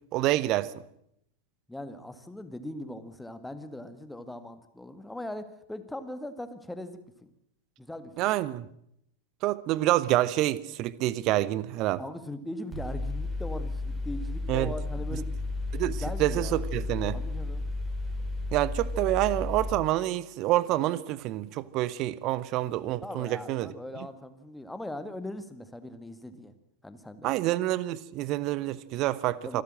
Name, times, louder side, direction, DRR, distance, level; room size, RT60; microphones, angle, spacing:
voice 1, 0.1-0.8 8.2-8.7 9.4-12.0 14.5-14.7 15.7-17.2 18.5-23.7 27.2-29.6, right 15 dB, 40° right, 0.9 m, -27 dB
voice 2, 1.7-7.3 7.8-8.3 12.0-15.4 16.0-16.6 17.1-17.7 23.0-26.5 26.8-27.3 29.4-29.6, left 1 dB, 5° left, 1.8 m, -40 dB
Mechanical fan, 12.7-19.7, left 2 dB, 15° right, 5.2 m, -33 dB
26.5 x 13.0 x 7.6 m
figure-of-eight pair, 90°, 0 cm